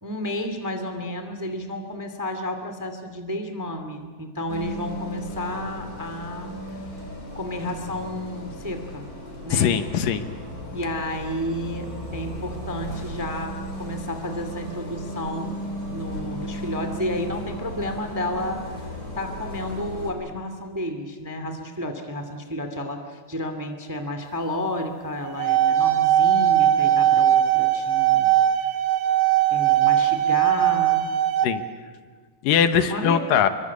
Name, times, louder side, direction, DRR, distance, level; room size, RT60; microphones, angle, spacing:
voice 1, 0.0-6.5 7.3-9.1 9.4-9.7 10.7-15.6 15.9-18.6 19.2-28.3 29.5-31.1 32.9-33.3, left 1 dB, 10° right, 7 dB, 1.4 m, -31 dB
Bus, 4.5-20.1, equal, 25° left, 5.3 m, -36 dB
voice 2, 9.5-10.3 31.4-31.6 32.4-33.5, left 8 dB, 75° left, 10 dB, 2.8 m, -21 dB
sound 1, 25.2-31.5, right 11 dB, 90° right, 3.3 m, -19 dB
27.0 x 23.5 x 8.4 m, 1.5 s
omnidirectional pair, 4.0 m